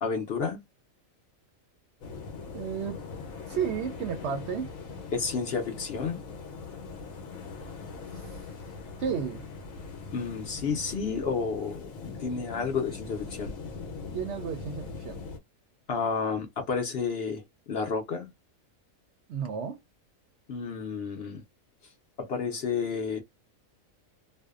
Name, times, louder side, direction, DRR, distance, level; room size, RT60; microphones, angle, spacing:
voice 1, 0.0-0.6 5.1-6.2 10.1-13.5 15.9-18.3 20.5-21.4 22.2-23.2, left 5 dB, 55° left, 0.8 m, -31 dB
sound 1, 2.0-15.4, left 4 dB, 75° left, 1.1 m, -41 dB
voice 2, 2.5-3.0 3.5-4.7 8.1-8.3 9.0-9.4 14.1-15.2 19.3-19.8, right 7 dB, 65° right, 0.7 m, -32 dB
2.6 x 2.1 x 2.3 m
omnidirectional pair, 1.4 m